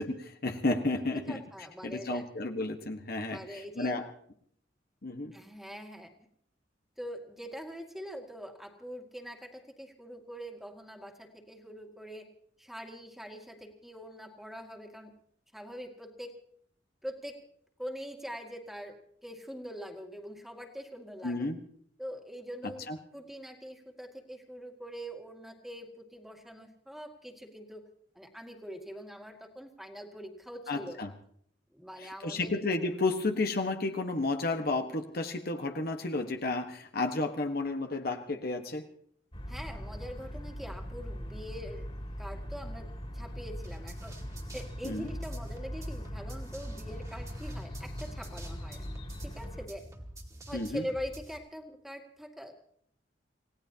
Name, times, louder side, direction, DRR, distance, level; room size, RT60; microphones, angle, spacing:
voice 1, 0.0-1.4 1.8-4.1 5.0-5.3 21.2-21.6 22.9-23.0 30.7-31.1 32.0-38.9 44.8-45.1 50.5-50.8, left 2 dB, 55° left, 5 dB, 1.3 m, -32 dB
voice 2, 1.1-2.2 3.3-4.0 5.3-6.1 7.0-12.3 12.6-15.1 15.5-16.3 17.0-17.4 17.8-19.0 19.2-21.5 22.0-27.9 28.2-31.0 31.7-32.6 39.5-41.9 42.2-44.2 44.5-48.8 49.2-49.9 50.5-52.5, equal, ahead, 2 dB, 2.1 m, -43 dB
sound 1, 39.3-49.7, equal, 35° left, 2.8 m, -40 dB
sound 2, 43.6-51.4, right 1 dB, 20° right, 2.4 m, -47 dB
28.5 x 17.0 x 2.9 m, 0.64 s
head